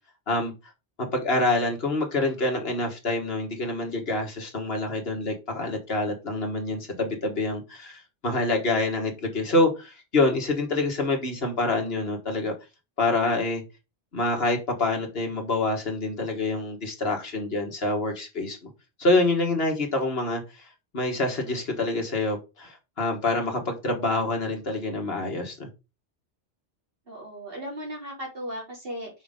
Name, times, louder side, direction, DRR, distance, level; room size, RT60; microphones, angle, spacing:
voice 1, 1.0-12.5 13.0-13.6 14.1-18.7 19.0-20.7 20.9-25.7, left 2 dB, 60° left, 1.9 m, -26 dB
voice 2, 27.1-29.1, equal, 55° right, 3.8 m, -36 dB
6.1 x 5.3 x 3.7 m
omnidirectional pair, 1.1 m